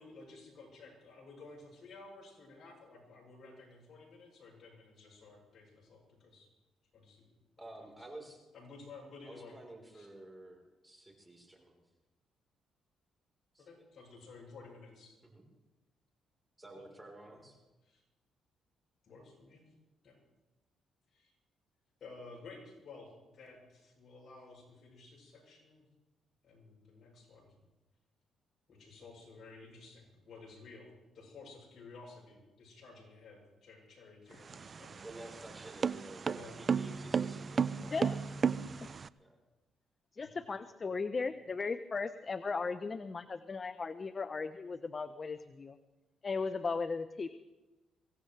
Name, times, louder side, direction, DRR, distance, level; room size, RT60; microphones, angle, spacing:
voice 1, 0.0-6.5 6.9-7.3 7.8-7.9 8.5-9.6 9.9-10.1 13.6-15.2 16.8-16.9 17.8-18.0 19.0-19.6 20.0-20.2 21.1-21.3 22.0-25.8 26.4-27.5 28.7-30.9 31.1-35.4 36.3-36.6 37.8-37.9 40.2-40.3, left 3 dB, 55° left, -1 dB, 7.8 m, -54 dB
voice 2, 7.6-8.5 9.2-11.8 13.5-13.7 15.2-15.4 16.6-17.6 35.0-38.2 39.2-39.4, right 1 dB, 15° right, 1 dB, 3.9 m, -52 dB
sound 1, 34.3-39.1, right 6 dB, 40° right, 0.4 m, -33 dB
voice 3, 37.8-38.2 40.2-45.8 46.2-47.3, left 4 dB, 35° left, 11 dB, 0.6 m, -37 dB
23.5 x 16.5 x 3.3 m, 1.1 s
cardioid pair, 90°, 0 cm